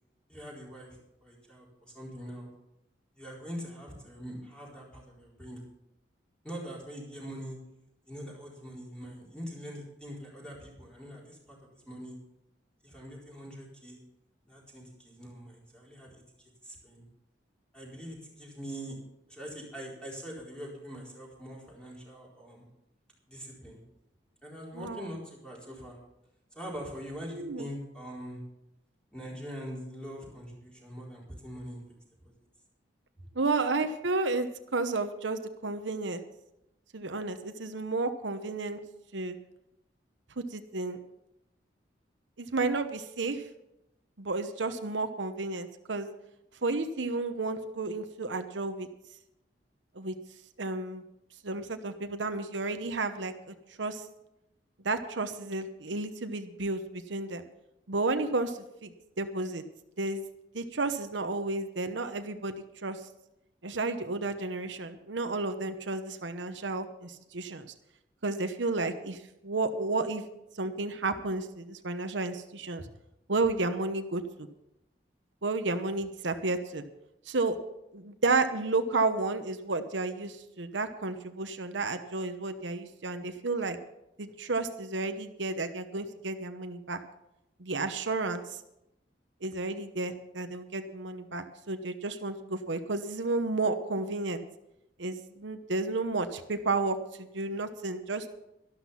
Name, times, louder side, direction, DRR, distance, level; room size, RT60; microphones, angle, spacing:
voice 1, 0.3-2.5 3.1-5.6 6.4-7.6 8.1-12.1 12.8-14.0 14.5-17.0 17.7-19.0 19.3-22.6 23.3-23.8 24.4-26.0 26.5-28.4 29.1-31.8 32.2-32.3, equal, 5° left, -3 dB, 4.2 m, -43 dB
voice 2, 24.7-25.0 27.3-27.6 33.3-36.2 36.9-38.8 39.1-39.4 40.4-41.0 42.4-43.4 44.2-46.1 46.6-48.9 50.0-50.1 50.6-51.0 51.4-54.0 54.8-57.4 57.9-58.9 59.2-59.6 60.0-60.2 60.5-63.0 63.6-67.7 68.2-69.2 69.4-70.2 70.5-72.8 73.3-74.5 75.4-76.8 77.3-77.6 77.9-83.8 84.2-87.0 87.6-88.4 89.4-94.4 95.0-98.3, right 3 dB, 80° right, 8 dB, 1.0 m, -32 dB
12.5 x 12.5 x 5.7 m, 0.85 s
head